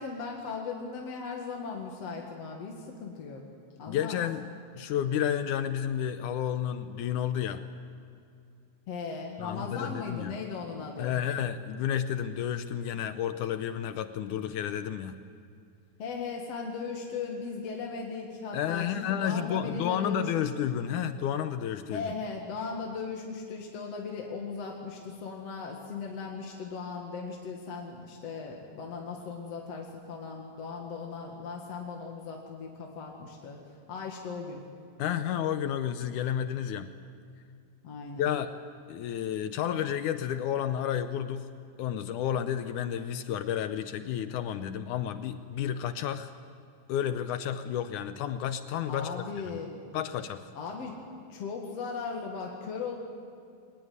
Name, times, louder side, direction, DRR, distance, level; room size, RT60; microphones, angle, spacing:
voice 1, 0.0-3.4 3.8-4.2 8.9-11.2 16.0-20.5 21.9-33.6 33.9-34.6 37.8-38.3 48.9-50.0 50.6-51.0 51.3-53.0, left 4 dB, 50° left, 0 dB, 2.6 m, -38 dB
voice 2, 3.9-4.5 4.7-7.6 9.4-10.4 11.0-15.2 18.5-22.1 35.0-36.9 38.2-38.5 38.9-41.5 41.8-46.3 46.9-49.2 49.5-49.6 49.9-50.5, left 9 dB, 75° left, 10 dB, 1.9 m, -31 dB
22.5 x 19.5 x 9.5 m, 2.4 s
omnidirectional pair, 4.2 m